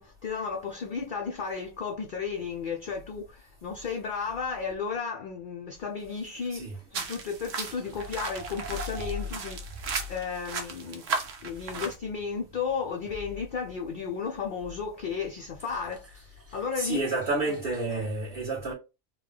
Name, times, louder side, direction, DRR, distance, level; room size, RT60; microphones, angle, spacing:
voice 1, 0.0-17.0 17.9-18.0, left 5 dB, 60° left, 0.5 m, -34 dB
sound 1, 5.8-11.4 14.5-14.6 15.6-17.9, right 2 dB, 20° right, 0.3 m, -49 dB
voice 2, 6.5-6.8 16.7-18.7, right 2 dB, 45° right, 1.4 m, -30 dB
sound 2, 6.9-11.9, right 5 dB, 70° right, 1.0 m, -35 dB
3.8 x 2.3 x 3.3 m
omnidirectional pair, 1.4 m